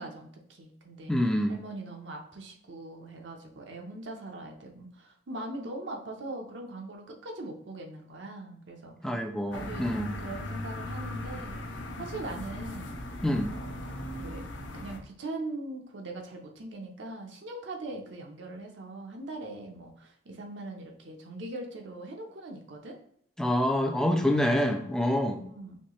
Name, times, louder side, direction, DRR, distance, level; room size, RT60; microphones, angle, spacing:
voice 1, 0.0-9.1 9.5-11.7 12.0-13.0 13.5-14.4 14.7-23.0 25.5-25.8, right 2 dB, 80° right, 2 dB, 0.8 m, -41 dB
voice 2, 1.1-1.6 9.0-10.1 13.2-13.5 23.4-25.4, left 1 dB, 5° left, 4 dB, 0.3 m, -26 dB
sound 1, 9.5-15.0, left 1 dB, 80° left, 0.8 m, -38 dB
4.3 x 3.2 x 3.1 m, 0.69 s
head